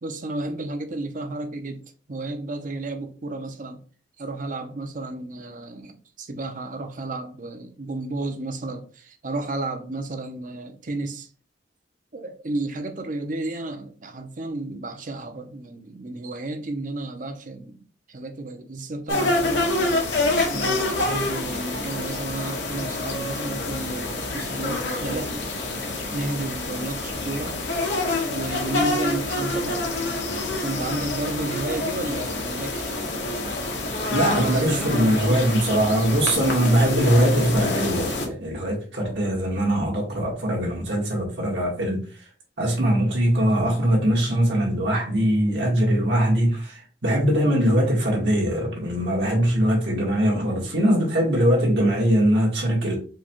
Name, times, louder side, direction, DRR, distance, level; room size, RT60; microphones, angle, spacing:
voice 1, 0.0-3.8 4.2-11.3 12.1-17.8 18.1-20.1 20.5-25.5 26.1-27.9 28.3-29.9 30.6-33.0 34.3-35.5, right 2 dB, 45° right, 0.7 m, -32 dB
sound 1, 19.1-38.3, left 2 dB, 85° left, 1.2 m, -27 dB
voice 2, 34.1-42.0 42.6-52.9, right 1 dB, 75° right, 1.6 m, -21 dB
4.7 x 2.3 x 4.4 m
head